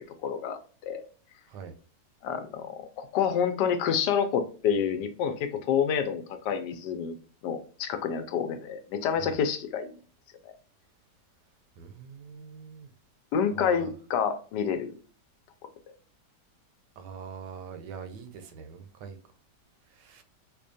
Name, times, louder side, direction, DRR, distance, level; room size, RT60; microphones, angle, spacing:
voice 1, 0.2-1.0 2.2-7.2 7.4-9.9 10.4-10.5 13.3-14.9, left 7 dB, 80° left, 1.2 m, -28 dB
voice 2, 11.8-12.9 13.5-13.9 17.0-19.2 19.9-20.2, right 6 dB, 80° right, 1.2 m, -43 dB
4.9 x 2.2 x 2.5 m
omnidirectional pair, 1.8 m